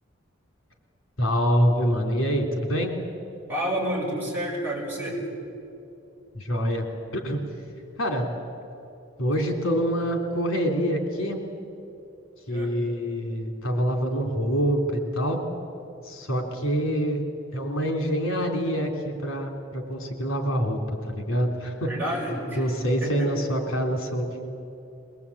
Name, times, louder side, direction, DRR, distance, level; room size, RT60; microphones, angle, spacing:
voice 1, 1.2-2.9 6.3-6.9 7.1-7.4 8.0-8.3 9.2-11.4 12.5-15.4 16.0-17.2 17.5-21.9 22.6-24.5, equal, 80° left, 3 dB, 3.3 m, -26 dB
voice 2, 3.5-5.2 12.5-12.8 21.8-22.6 23.0-23.3, equal, 10° right, -5 dB, 6.6 m, -29 dB
22.5 x 21.5 x 8.6 m, 2.7 s
head